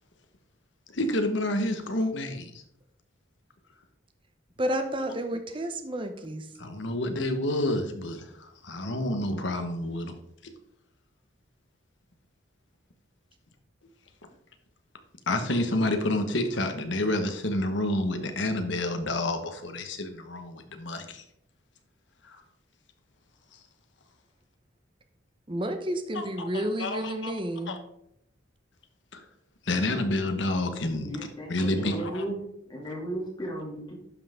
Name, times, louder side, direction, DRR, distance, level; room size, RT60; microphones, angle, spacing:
voice 1, 0.9-2.5 6.6-10.1 10.4-10.5 15.3-21.2 22.2-22.4 26.1-27.4 27.7-27.8 29.1-29.2 29.7-32.2, left 1 dB, 70° left, 7 dB, 1.1 m, -29 dB
voice 2, 4.6-6.5 25.5-27.8, right 1 dB, 25° right, 7 dB, 0.8 m, -31 dB
voice 3, 31.0-32.4 32.7-33.9, right 1 dB, 25° left, -4 dB, 2.5 m, -35 dB
11.0 x 5.6 x 3.7 m, 0.76 s
head